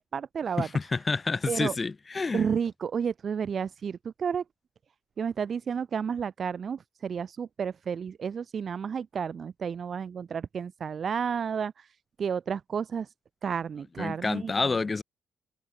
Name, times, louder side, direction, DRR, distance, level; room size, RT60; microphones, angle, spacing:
voice 1, 0.0-0.7 1.5-1.8 2.3-4.4 5.2-13.1 13.4-14.7, right 7 dB, 35° right, 2.5 m, -31 dB
voice 2, 0.6-2.4 14.0-15.0, left 4 dB, 20° left, 3.5 m, -28 dB
cardioid pair, 175°, 0 cm